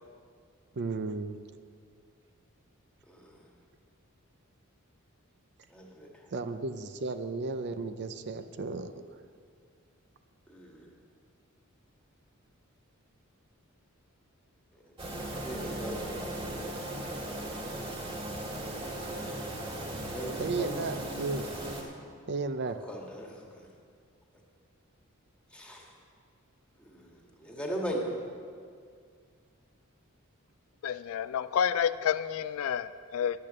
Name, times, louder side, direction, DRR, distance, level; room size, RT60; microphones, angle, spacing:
voice 1, 0.8-1.4 6.3-8.9 20.4-21.5 22.3-22.8, right 3 dB, 50° right, 9 dB, 0.5 m, -34 dB
voice 2, 3.1-3.4 5.7-6.3 10.5-10.9 15.2-17.7 20.0-20.9 22.9-23.7 25.5-25.9 26.8-27.1 27.4-28.0, equal, 5° left, -1 dB, 1.7 m, -40 dB
sound 1, 15.0-21.8, right 1 dB, 25° right, 2.1 m, -37 dB
voice 3, 30.8-33.4, left 8 dB, 70° left, 14 dB, 0.3 m, -29 dB
10.5 x 8.7 x 7.5 m, 2.2 s
head